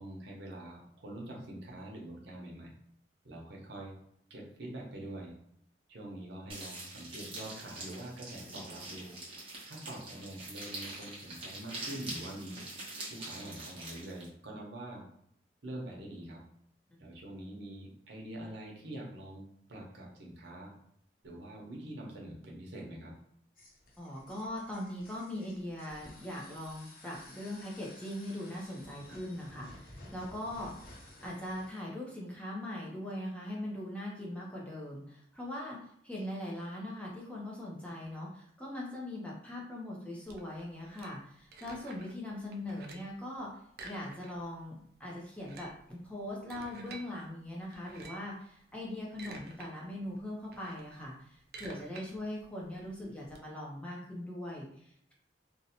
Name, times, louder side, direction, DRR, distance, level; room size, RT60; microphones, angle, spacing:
voice 1, 0.0-2.7 3.2-3.9 4.3-5.3 5.9-9.2 9.7-12.6 13.1-15.0 15.6-16.4 17.0-20.7 21.2-23.1, right 1 dB, 75° right, -1 dB, 0.7 m, -45 dB
sound 1, 6.5-14.3, right 2 dB, 30° right, 0.7 m, -44 dB
sound 2, 23.5-31.8, left 1 dB, 50° left, 0.6 m, -54 dB
voice 2, 24.0-30.7 31.2-43.5 43.8-55.1, left 1 dB, 5° left, -4 dB, 0.5 m, -41 dB
sound 3, 40.3-42.2 42.5-43.2 43.7-44.6 44.9-45.0 45.3-47.1 47.7-48.3 48.9-49.7 50.0-53.4, right 3 dB, 55° right, 0.3 m, -50 dB
2.6 x 2.1 x 2.8 m, 0.70 s
head